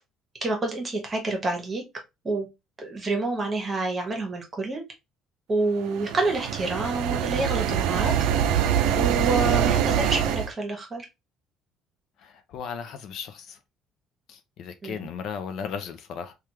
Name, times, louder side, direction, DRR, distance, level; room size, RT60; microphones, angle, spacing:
voice 1, 0.4-1.8 2.2-2.5 2.8-4.8 5.5-8.1 9.0-11.1 14.8-15.1, right 2 dB, 20° right, 1.0 m, -28 dB
sound 1, 5.8-10.5, right 9 dB, 85° right, 0.4 m, -24 dB
voice 2, 12.2-13.6 14.3-16.3, left 7 dB, 55° left, 0.4 m, -36 dB
3.3 x 2.3 x 2.9 m
cardioid pair, 160°, 0 cm